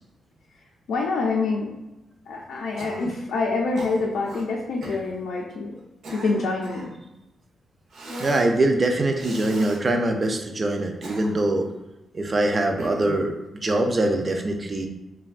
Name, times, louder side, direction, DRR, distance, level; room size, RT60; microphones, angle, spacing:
voice 1, 0.9-1.7 2.3-5.7 6.1-6.9, left 3 dB, 85° left, -2 dB, 0.4 m, -26 dB
Cough, 2.8-3.2 3.8-4.5 4.8-5.0 5.8-6.9 7.9-8.5 9.2-9.8 10.8-11.6 12.8-13.3, right 2 dB, 70° right, 0.6 m, -37 dB
voice 2, 8.2-11.7 12.1-14.9, right 2 dB, 30° right, 3 dB, 0.3 m, -23 dB
3.3 x 2.2 x 2.4 m, 0.98 s
wide cardioid pair, 130°, 0 cm